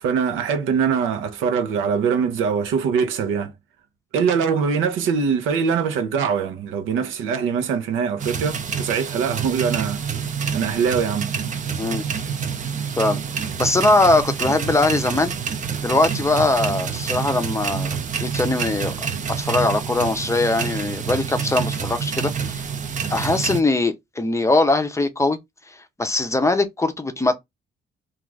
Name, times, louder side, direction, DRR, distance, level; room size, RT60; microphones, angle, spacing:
voice 1, 0.0-3.5 4.1-10.0 10.5-11.3, right 6 dB, 90° right, 0.6 m, -22 dB
sound 1, 8.2-23.6, right 6 dB, 40° right, 0.5 m, -27 dB
voice 2, 13.6-15.3 15.8-18.9 19.4-22.7 23.1-25.4 26.0-27.4, left 2 dB, 15° left, 0.5 m, -21 dB
2.4 x 2.3 x 3.2 m
cardioid pair, 90°, 20 cm